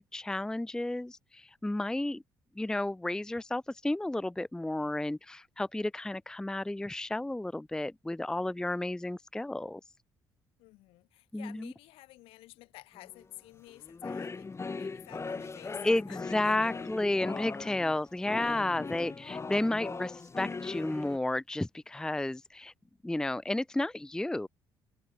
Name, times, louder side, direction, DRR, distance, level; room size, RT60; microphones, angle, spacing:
voice 1, 0.0-2.2 2.6-9.8 11.3-11.7 15.8-22.7 23.0-24.5, left 2 dB, 5° left, 0.5 m, -32 dB
voice 2, 10.6-14.5 14.8-17.2 18.8-18.9 19.2-19.3 20.8-20.9, left 19 dB, 80° left, 6.5 m, -52 dB
sound 1, 13.0-13.2 13.7-21.2, left 4 dB, 30° left, 3.0 m, -39 dB
supercardioid pair, 60°, 9 cm